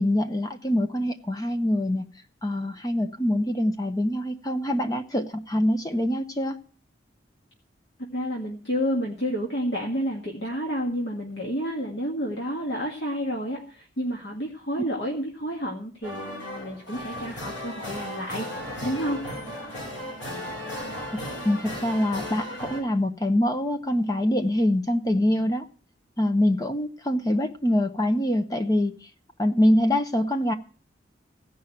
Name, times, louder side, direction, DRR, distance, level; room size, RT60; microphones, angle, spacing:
voice 1, 0.0-2.1 2.4-6.6 19.6-19.7 21.1-21.2 21.4-25.7 26.2-29.1 29.4-30.5, left 1 dB, 20° left, 0.8 m, -24 dB
voice 2, 8.1-18.5 18.8-19.4, equal, 60° left, 2.0 m, -30 dB
sound 1, 16.0-22.8, equal, 90° left, 5.2 m, -35 dB
16.0 x 5.5 x 9.1 m
head